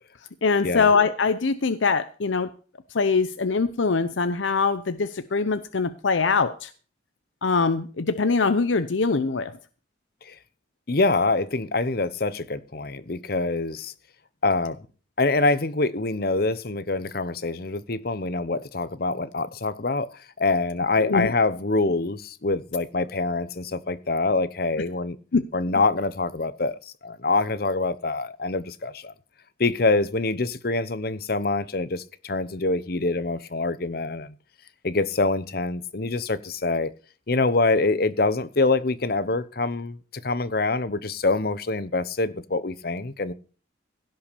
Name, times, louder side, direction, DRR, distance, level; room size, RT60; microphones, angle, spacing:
voice 1, 0.4-2.5 2.9-6.7 7.4-9.5 21.0-21.3 25.3-25.5, left 4 dB, 90° left, 0.7 m, -23 dB
voice 2, 10.9-13.9 14.4-14.8 15.2-20.1 20.4-25.2 25.5-29.1 29.6-34.3 34.8-36.9 37.3-40.0 40.2-43.3, left 3 dB, 55° left, 0.9 m, -25 dB
16.5 x 5.7 x 6.8 m
head